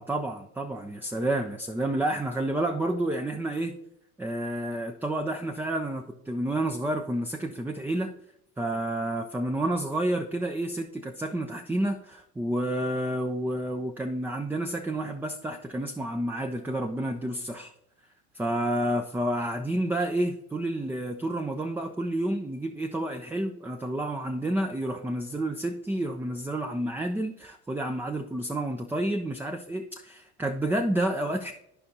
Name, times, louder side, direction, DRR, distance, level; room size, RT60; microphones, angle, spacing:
voice 1, 0.0-3.8 4.2-8.1 8.6-17.7 18.3-31.5, right 1 dB, 5° right, 4 dB, 0.5 m, -30 dB
12.0 x 5.3 x 2.8 m, 0.79 s
figure-of-eight pair, 70°, 45 cm